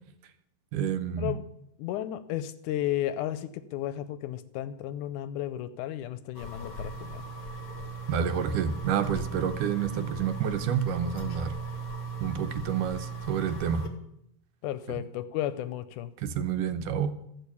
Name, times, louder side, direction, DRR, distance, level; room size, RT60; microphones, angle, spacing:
voice 1, 0.7-1.3 8.1-11.5 12.2-13.9 14.9-15.0 16.2-17.2, right 8 dB, 80° right, 9 dB, 2.3 m, -29 dB
voice 2, 1.8-7.2 14.6-16.1, left 12 dB, 80° left, 13 dB, 2.0 m, -33 dB
sound 1, 6.3-13.9, right 4 dB, 60° left, 1.1 m, -37 dB
13.5 x 6.5 x 8.4 m, 0.81 s
omnidirectional pair, 3.8 m